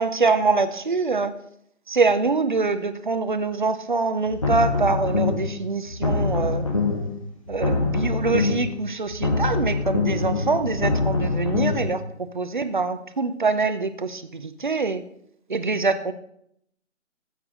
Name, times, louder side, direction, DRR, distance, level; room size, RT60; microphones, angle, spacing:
voice 1, 0.0-1.3 1.9-6.7 7.5-15.0 15.5-16.1, right 4 dB, 40° right, 11 dB, 0.6 m, -24 dB
sound 1, 4.3-5.5 5.9-7.1 7.5-8.7 9.1-11.9, left 3 dB, 25° left, 0.9 m, -24 dB
12.5 x 8.1 x 3.7 m, 0.71 s
hypercardioid pair, 170°, 38 cm